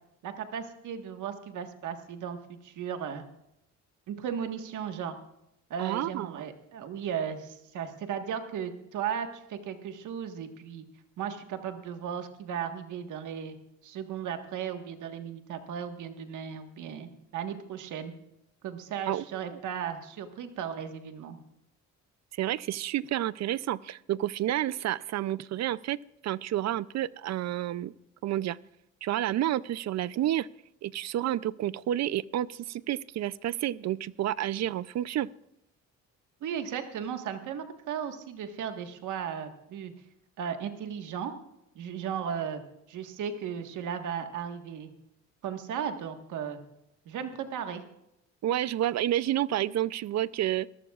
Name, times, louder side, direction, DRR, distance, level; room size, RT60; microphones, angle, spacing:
voice 1, 0.2-3.2 4.1-5.2 5.7-10.8 11.2-13.5 13.8-18.1 18.6-21.4 36.4-39.9 40.4-41.3 41.7-42.6 42.9-44.9 45.4-46.6 47.0-47.8, right 8 dB, 80° right, 6 dB, 1.6 m, -36 dB
voice 2, 5.8-6.4 19.1-19.2 22.4-26.0 26.2-27.9 28.2-28.6 29.0-30.5 30.8-35.3 48.4-50.7, right 13 dB, 60° right, 19 dB, 0.5 m, -30 dB
22.0 x 14.0 x 2.4 m, 0.84 s
cardioid pair, 90°, 30 cm